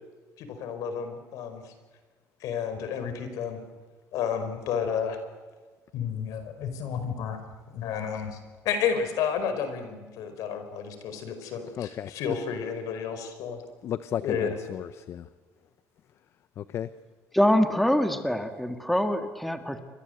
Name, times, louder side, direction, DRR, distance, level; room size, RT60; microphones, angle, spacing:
voice 1, 0.4-1.7 2.4-3.6 4.1-5.2 5.9-7.4 7.7-8.4 8.7-13.6 14.2-14.6, left 7 dB, 70° left, 8 dB, 5.1 m, -31 dB
voice 2, 11.8-12.2 13.8-15.3 16.6-16.9, left 10 dB, 50° left, 14 dB, 0.8 m, -34 dB
voice 3, 17.3-19.8, left 1 dB, ahead, 7 dB, 1.8 m, -24 dB
29.0 x 23.5 x 8.1 m, 1.4 s
cardioid pair, 140°, 6 cm